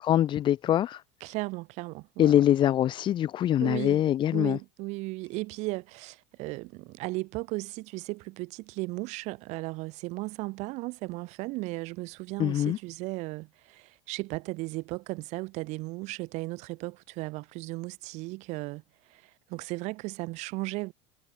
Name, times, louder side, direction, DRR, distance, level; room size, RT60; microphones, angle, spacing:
voice 1, 0.0-1.0 2.2-4.6 12.4-12.8, left 11 dB, 35° left, 3.2 m, -24 dB
voice 2, 1.2-2.4 3.6-4.0 4.3-18.8 19.1-20.9, right 23 dB, 60° right, 5.7 m, -36 dB
supercardioid pair, 140°, 13 cm